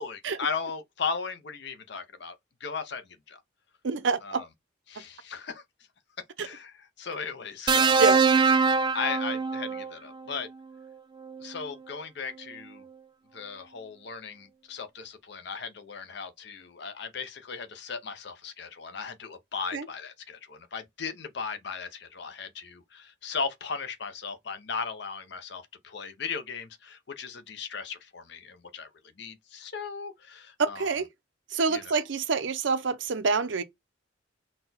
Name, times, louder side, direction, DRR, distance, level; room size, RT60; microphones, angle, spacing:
voice 1, 0.0-2.3 2.6-3.0 3.3-3.4 4.2-4.5 4.9-5.6 6.4-8.0 8.7-10.5 11.4-12.8 13.3-28.9 29.2-31.0 31.7-31.9, left 5 dB, 55° left, 0.6 m, -37 dB
voice 2, 3.8-4.4 6.4-6.5 8.0-8.2 19.7-19.9 30.6-31.1 31.5-33.6, right 4 dB, 65° right, 0.6 m, -26 dB
sound 1, 7.7-9.9 11.3-11.5, right 5 dB, 20° right, 0.3 m, -22 dB
4.0 x 2.3 x 3.9 m
head